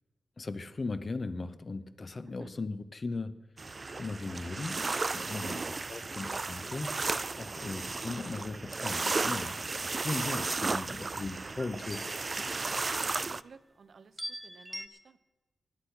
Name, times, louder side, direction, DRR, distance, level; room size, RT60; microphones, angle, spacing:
voice 1, 0.4-3.4 3.9-4.9 5.1-5.6 5.9-6.9 7.4-12.2, left 3 dB, 40° left, 12 dB, 0.8 m, -38 dB
sound 1, 3.6-13.4, right 3 dB, 35° right, 0.3 m, -34 dB
sound 2, 11.8-13.2 14.2-14.9, equal, ahead, 0.8 m, -44 dB
voice 2, 12.7-15.2, right 5 dB, 65° right, 12 dB, 0.8 m, -52 dB
16.0 x 10.5 x 5.9 m, 1.2 s
wide cardioid pair, 110°, 0 cm